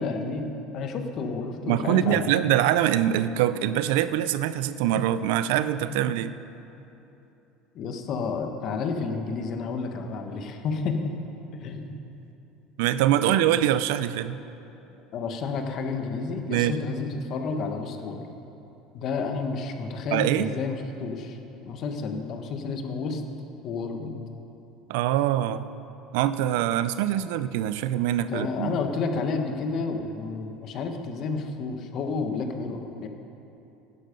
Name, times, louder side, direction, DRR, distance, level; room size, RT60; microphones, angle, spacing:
voice 1, 0.0-2.3 5.9-6.0 7.7-11.2 11.6-12.0 13.2-13.3 13.6-13.8 15.1-18.3 18.9-21.4 21.7-23.2 23.6-24.2 28.3-33.1, left 4 dB, 50° left, 5 dB, 1.4 m, -30 dB
voice 2, 1.7-6.3 12.8-14.4 16.5-16.8 20.1-20.5 24.9-25.6 26.1-28.8, right 12 dB, 80° right, 13 dB, 0.5 m, -24 dB
15.5 x 11.5 x 5.3 m, 3.0 s
supercardioid pair, 125°, 0 cm